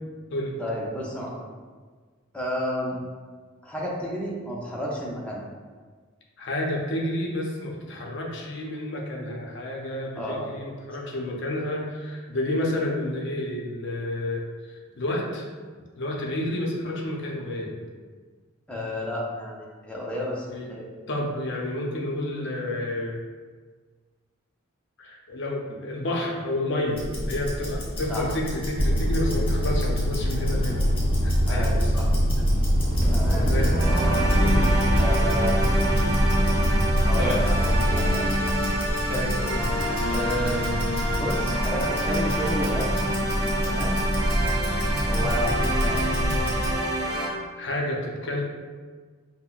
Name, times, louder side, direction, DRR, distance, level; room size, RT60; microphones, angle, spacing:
voice 1, 0.6-1.4 2.3-3.0 3.6-5.4 10.2-10.5 18.7-20.9 28.1-28.2 31.5-32.1 32.4-32.5 33.1-33.5 33.9-34.1 35.0-35.7 37.0-38.6 40.1-40.8 41.1-42.9 43.6-44.0 45.1-46.2, equal, 5° left, -5 dB, 0.5 m, -31 dB
voice 2, 6.4-14.4 14.7-15.5 16.0-17.8 20.5-20.7 21.1-23.2 25.0-30.8 31.2-32.0 33.4-33.7 34.4-34.6 39.1-39.7 47.6-48.4, left 1 dB, 60° left, -1 dB, 0.6 m, -30 dB
Tick-tock, 26.9-46.8, equal, 25° left, 1.0 m, -28 dB
sound 1, 28.8-38.1, equal, 45° right, 1.0 m, -23 dB
sound 2, 33.8-47.3, right 1 dB, 15° right, 1.0 m, -28 dB
5.6 x 2.1 x 2.4 m, 1.5 s
head